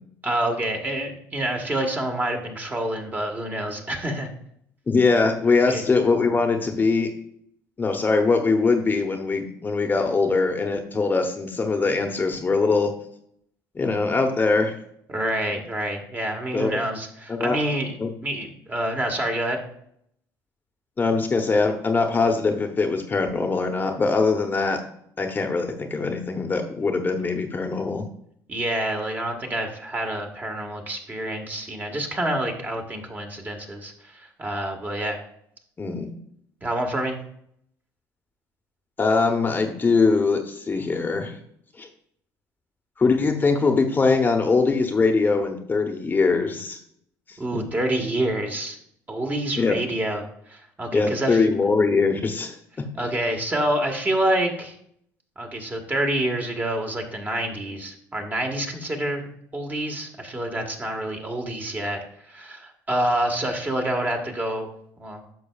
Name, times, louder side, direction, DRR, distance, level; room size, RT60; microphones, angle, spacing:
voice 1, 0.2-4.3 5.7-5.8 15.1-17.9 18.2-19.6 28.5-35.2 36.6-37.2 47.4-48.8 49.1-51.4 53.0-54.8 55.4-62.0 62.3-64.7 65.0-65.2, right 1 dB, 25° right, 3 dB, 1.5 m, -27 dB
voice 2, 4.9-7.1 7.8-12.9 13.7-14.7 16.5-16.8 17.3-17.6 18.0-18.1 21.0-24.8 25.2-28.0 35.8-36.1 39.0-41.4 41.8-41.9 43.0-46.8 47.3-47.6 49.6-49.8 50.9-52.6, left 4 dB, 25° left, 4 dB, 0.9 m, -22 dB
10.0 x 6.3 x 2.4 m, 0.70 s
supercardioid pair, 90°, 8 cm